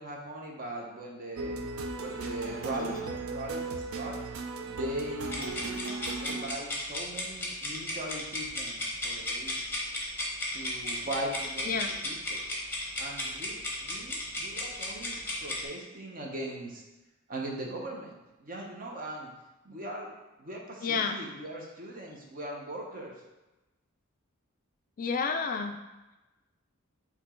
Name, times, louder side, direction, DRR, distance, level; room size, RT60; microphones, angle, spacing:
voice 1, 0.0-1.6 2.0-3.0 3.3-4.2 4.6-5.8 6.2-9.6 10.5-12.4 13.0-16.8 17.3-19.3 19.6-20.1 20.4-23.1, right 1 dB, 40° right, -1 dB, 0.8 m, -40 dB
sound 1, 1.4-6.4, right 3 dB, 75° right, 0.5 m, -36 dB
voice 2, 2.7-3.1 11.7-11.9 20.8-21.2 25.0-25.8, left 5 dB, 40° left, 6 dB, 0.3 m, -30 dB
sound 2, 5.3-15.7, left 1 dB, 10° left, 0.9 m, -35 dB
4.3 x 2.9 x 4.3 m, 1.0 s
head